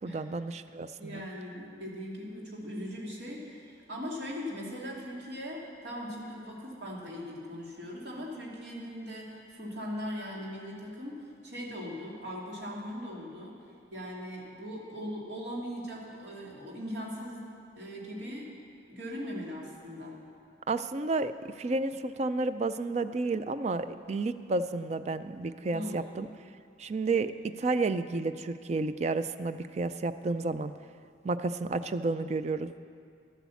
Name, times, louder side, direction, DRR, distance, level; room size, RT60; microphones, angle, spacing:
voice 1, 0.0-1.2 20.7-26.3 26.8-30.7 31.2-32.7, right 3 dB, 35° right, 12 dB, 0.4 m, -31 dB
voice 2, 1.0-13.6 13.9-17.5 17.8-18.5 18.9-20.2 25.7-26.0, equal, 65° right, -3 dB, 2.5 m, -39 dB
12.5 x 8.3 x 7.0 m, 2.3 s
head